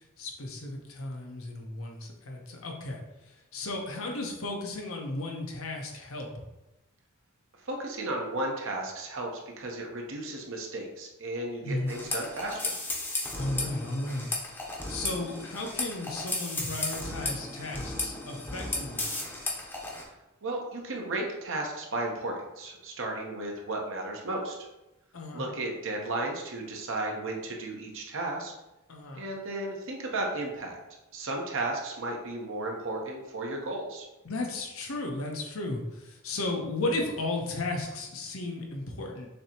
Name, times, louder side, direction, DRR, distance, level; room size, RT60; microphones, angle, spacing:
voice 1, 0.2-3.0 3.3-6.3 11.6-12.0 13.3-14.3 14.9-19.1 25.1-25.5 28.9-29.3 34.2-39.3, left 2 dB, 75° left, 1 dB, 0.9 m, -34 dB
voice 2, 7.6-9.3 9.6-12.8 20.4-24.6 25.3-28.5 29.2-30.8 31.1-34.1, right 2 dB, 65° right, 0 dB, 0.8 m, -34 dB
sound 1, 11.9-20.0, left 2 dB, 10° left, 0.8 m, -34 dB
6.4 x 2.8 x 2.9 m, 0.97 s
head